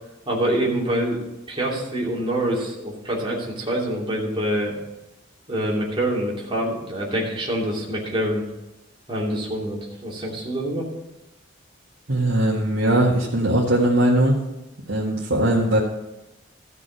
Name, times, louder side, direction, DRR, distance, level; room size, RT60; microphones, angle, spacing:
voice 1, 0.3-1.2 1.5-4.7 5.5-8.4 9.1-10.9, right 1 dB, 25° right, -4 dB, 2.9 m, -25 dB
voice 2, 12.1-14.4 14.9-15.8, right 1 dB, 85° right, -5 dB, 1.7 m, -20 dB
14.0 x 6.1 x 6.3 m, 0.95 s
head